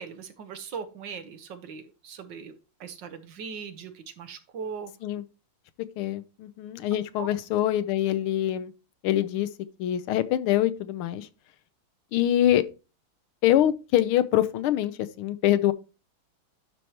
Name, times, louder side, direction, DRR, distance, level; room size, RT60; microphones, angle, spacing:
voice 1, 0.0-2.5 2.8-4.9 7.2-7.3, right 6 dB, 65° right, 1.5 m, -39 dB
voice 2, 6.0-8.7 9.0-9.5 9.8-11.3 12.1-12.7 13.4-15.7, left 12 dB, 85° left, 1.6 m, -24 dB
11.5 x 4.6 x 2.9 m
omnidirectional pair, 2.3 m